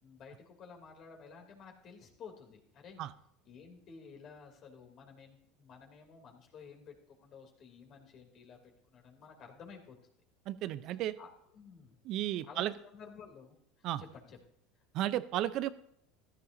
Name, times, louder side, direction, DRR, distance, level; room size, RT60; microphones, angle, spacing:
voice 1, 0.0-3.0 3.4-10.0 11.2-12.0 12.5-14.4, left 5 dB, 50° left, 2 dB, 3.1 m, -53 dB
voice 2, 10.5-11.1 12.0-12.7 13.8-14.0 14.9-15.7, right 13 dB, 55° right, 15 dB, 0.7 m, -33 dB
15.0 x 13.0 x 2.8 m, 0.72 s
hypercardioid pair, 85°, 0 cm